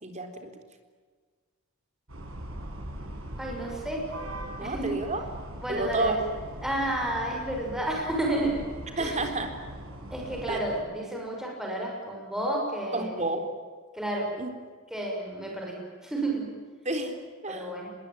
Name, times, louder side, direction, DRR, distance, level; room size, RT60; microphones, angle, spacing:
voice 1, 0.0-0.5 4.6-5.2 5.7-6.1 9.0-9.5 10.5-10.6 12.9-13.4 14.4-14.5 16.9-17.7, right 2 dB, 35° right, 6 dB, 3.9 m, -30 dB
sound 1, 2.1-10.8, right 1 dB, 85° right, 6.8 m, -40 dB
voice 2, 3.4-4.0 4.6-5.0 5.6-6.2 6.6-8.7 8.9-9.4 10.1-13.2 13.9-14.3 14.9-16.5 17.5-17.9, right 1 dB, 5° right, -1 dB, 6.4 m, -31 dB
26.0 x 21.5 x 9.1 m, 1.5 s
head